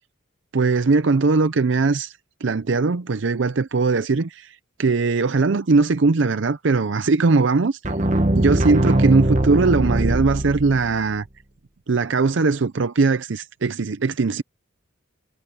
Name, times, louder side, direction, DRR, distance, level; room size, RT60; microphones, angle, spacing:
voice 1, 0.5-7.8 8.3-11.3 11.9-14.4, right 4 dB, 65° right, 0.5 m, -20 dB
sound 1, 7.8-11.0, right 1 dB, 35° right, 1.2 m, -21 dB
head